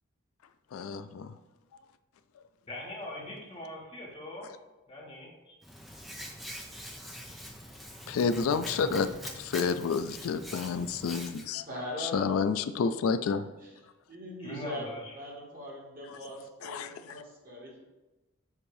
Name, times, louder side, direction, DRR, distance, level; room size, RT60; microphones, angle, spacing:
voice 1, 0.7-1.3 8.1-9.1 9.4-11.6 12.0-13.5 16.6-16.9, left 5 dB, 85° left, 12 dB, 0.3 m, -29 dB
voice 2, 2.7-4.5 4.9-5.6 14.4-15.1, left 1 dB, 25° left, -3 dB, 1.3 m, -41 dB
Hands, 5.6-11.4, equal, ahead, 0.5 m, -44 dB
voice 3, 11.7-12.3 13.6-13.7 14.1-14.9 15.1-17.8, equal, 40° right, -3 dB, 1.6 m, -41 dB
7.3 x 2.7 x 4.8 m, 1.1 s
head